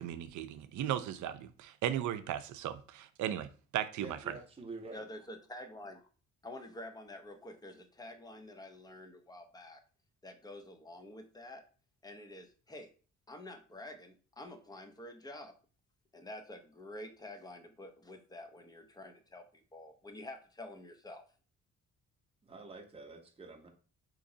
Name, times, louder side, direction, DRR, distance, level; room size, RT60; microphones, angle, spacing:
voice 1, 0.0-4.2, right 11 dB, 75° right, 0.5 m, -36 dB
voice 2, 4.0-5.0 22.4-23.7, right 3 dB, 20° right, 0.9 m, -47 dB
voice 3, 4.9-6.1 6.4-9.8 10.2-11.6 12.0-12.9 13.3-15.5 16.1-21.3, left 1 dB, 15° left, 0.6 m, -48 dB
3.8 x 2.9 x 2.7 m
cardioid pair, 90°, 30 cm